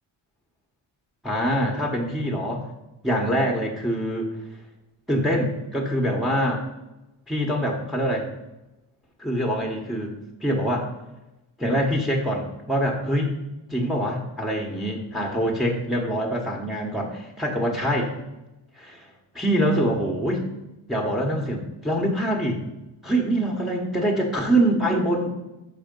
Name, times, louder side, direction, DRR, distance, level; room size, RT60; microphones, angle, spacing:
voice 1, 1.2-2.7 3.0-4.3 5.1-6.7 7.3-8.3 9.2-10.1 10.4-10.9 11.6-13.3 13.7-18.1 18.7-19.0 19.3-20.4 20.9-22.6 23.0-25.3, equal, ahead, 2 dB, 1.0 m, -24 dB
6.8 x 5.6 x 5.2 m, 0.98 s
wide cardioid pair, 130°, 50 cm